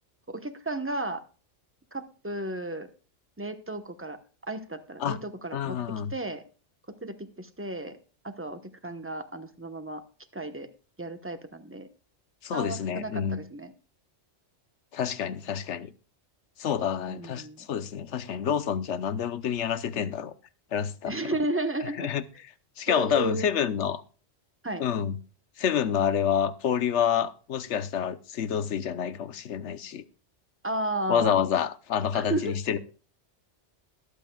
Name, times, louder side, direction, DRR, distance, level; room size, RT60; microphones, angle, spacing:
voice 1, 0.3-1.2 1.9-2.9 3.4-4.2 4.5-5.8 6.1-6.4 7.0-8.0 8.2-10.0 10.3-10.7 11.0-11.9 12.5-13.7 17.1-17.6 21.1-22.1 22.9-23.5 24.6-24.9 30.6-31.4 32.1-32.5, right 2 dB, 10° right, 1.0 m, -33 dB
voice 2, 5.5-6.1 12.4-13.4 14.9-15.9 16.6-20.3 20.7-21.1 22.0-22.2 22.8-24.0 24.8-25.2 25.6-30.0 31.1-32.8, left 8 dB, 80° left, 1.1 m, -28 dB
21.0 x 8.5 x 2.3 m
omnidirectional pair, 1.2 m